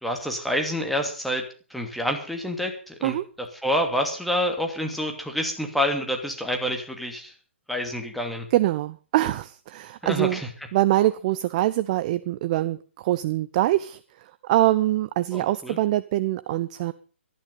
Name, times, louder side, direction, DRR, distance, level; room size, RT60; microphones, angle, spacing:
voice 1, 0.0-3.1 3.6-7.3 7.7-8.5 10.0-10.5 15.3-15.8, equal, ahead, 2 dB, 2.7 m, -28 dB
voice 2, 8.5-10.4 10.7-14.0 14.4-16.9, right 15 dB, 35° right, 15 dB, 0.7 m, -24 dB
17.5 x 12.0 x 5.5 m, 0.39 s
hypercardioid pair, 135°, 7 cm